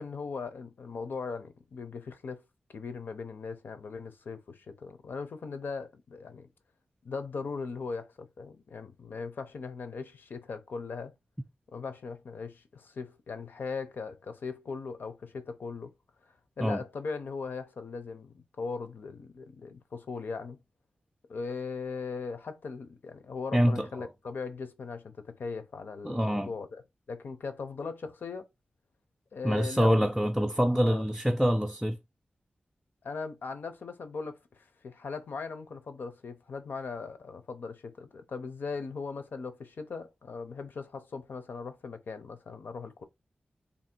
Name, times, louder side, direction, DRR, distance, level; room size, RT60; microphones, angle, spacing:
voice 1, 0.0-2.4 2.7-6.5 7.0-11.1 11.7-15.9 16.6-20.6 21.3-26.8 27.1-28.5 29.3-30.1 30.7-31.0 33.0-43.0, left 4 dB, 80° left, 0.6 m, -39 dB
voice 2, 23.5-24.1 26.0-26.5 29.4-32.0, equal, 5° right, 0.4 m, -26 dB
2.8 x 2.6 x 4.3 m
wide cardioid pair, 80°, 3 cm